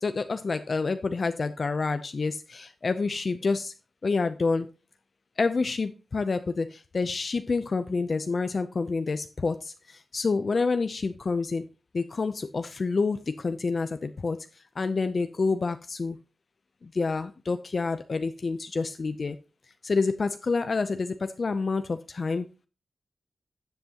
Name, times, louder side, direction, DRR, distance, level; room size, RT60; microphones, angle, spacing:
voice 1, 0.0-3.7 4.0-4.7 5.4-11.7 11.9-14.5 14.8-16.2 16.8-19.4 19.8-22.5, left 4 dB, 45° left, 10 dB, 0.5 m, -28 dB
12.5 x 7.8 x 2.9 m, 0.32 s
wide cardioid pair, 125°, 0 cm